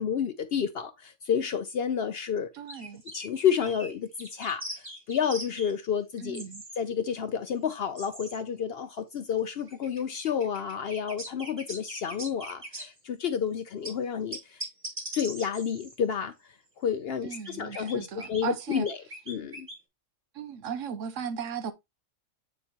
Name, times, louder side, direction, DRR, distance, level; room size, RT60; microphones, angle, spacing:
voice 1, 0.0-2.5 3.1-6.4 6.8-14.6 15.1-16.3 16.8-19.0 19.3-19.7, left 7 dB, 60° left, 0.7 m, -30 dB
voice 2, 2.5-3.0 6.2-6.6 17.2-18.9 20.3-21.7, right 7 dB, 85° right, 1.1 m, -36 dB
sound 1, 2.7-3.3 3.6-3.9 4.2-5.7 6.3-6.8 7.2-7.3 8.0-8.4 9.3-13.0 13.8-13.9 14.3-15.9 17.1-18.4 18.7-19.8, right 1 dB, 25° right, 1.9 m, -41 dB
8.9 x 4.1 x 2.9 m
omnidirectional pair, 1.3 m